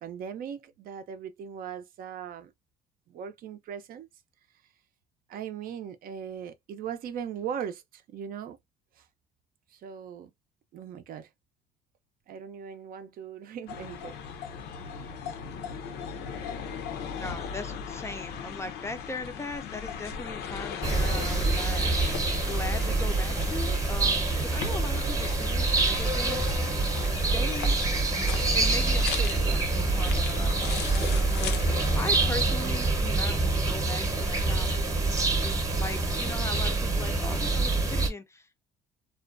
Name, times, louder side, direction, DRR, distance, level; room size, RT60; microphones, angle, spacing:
voice 1, 0.0-2.5 3.1-4.1 5.3-8.6 9.0-9.1 9.7-10.3 10.7-11.3 12.3-14.2, right 8 dB, 60° right, 0.5 m, -39 dB
sound 1, 13.7-32.9, left 6 dB, 75° left, 0.6 m, -38 dB
voice 2, 17.1-26.8 27.3-27.8 28.5-34.9 35.7-38.6, left 2 dB, 15° left, 0.4 m, -39 dB
sound 2, 20.8-38.1, right 3 dB, 20° right, 0.8 m, -26 dB
2.4 x 2.1 x 2.4 m
cardioid pair, 110°, 17 cm